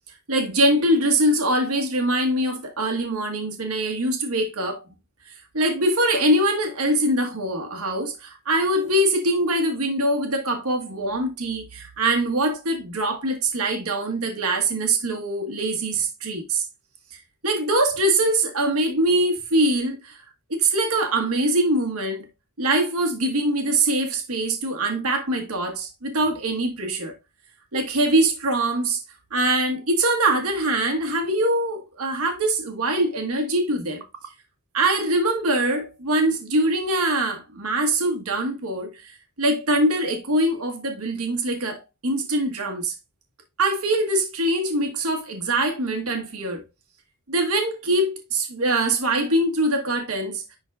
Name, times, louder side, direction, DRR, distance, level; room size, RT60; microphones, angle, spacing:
voice 1, 0.3-4.8 5.3-16.6 17.4-20.2 20.5-22.3 22.6-27.1 27.7-29.0 29.3-34.0 34.7-42.9 43.6-46.6 47.3-50.6, right 1 dB, 80° right, 1.5 m, -23 dB
10.5 x 3.9 x 2.4 m
head